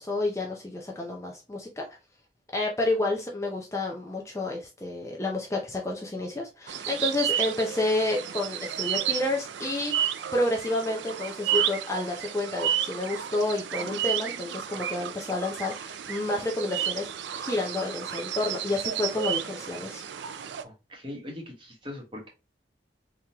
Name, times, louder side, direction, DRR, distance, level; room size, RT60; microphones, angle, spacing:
voice 1, 0.0-1.9 2.5-17.1 17.3-20.0, left 2 dB, 15° left, 0 dB, 0.5 m, -30 dB
sound 1, 6.7-20.6, right 10 dB, 70° right, 0.4 m, -32 dB
voice 2, 20.6-22.3, left 1 dB, 25° right, -1 dB, 1.3 m, -41 dB
3.7 x 2.9 x 2.8 m, 0.28 s
head